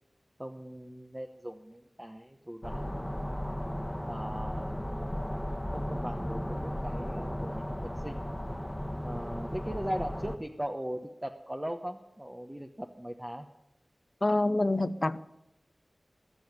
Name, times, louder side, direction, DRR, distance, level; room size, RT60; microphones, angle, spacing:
voice 1, 0.4-2.8 3.1-3.6 4.0-5.2 5.7-7.6 8.0-8.2 9.0-13.5, equal, 15° right, 4 dB, 1.0 m, -39 dB
sound 1, 2.6-10.4, equal, 10° left, 1.4 m, -35 dB
voice 2, 14.2-15.2, left 2 dB, 40° left, 14 dB, 0.7 m, -26 dB
20.5 x 7.1 x 9.6 m, 0.88 s
wide cardioid pair, 70°, 0 cm